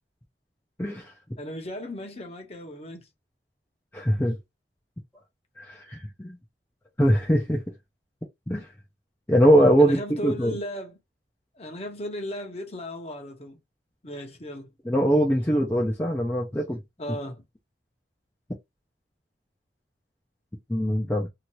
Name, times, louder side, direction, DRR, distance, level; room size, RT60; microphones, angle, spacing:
voice 1, 0.8-1.1 3.9-4.4 5.6-6.4 7.0-7.7 8.5-8.7 9.3-10.6 14.8-16.8 20.7-21.3, equal, 10° left, 0.5 m, -22 dB
voice 2, 1.4-3.1 9.8-10.9 11.6-13.6 14.0-14.7 17.0-17.4, equal, 35° left, 0.8 m, -35 dB
2.8 x 2.5 x 2.9 m
head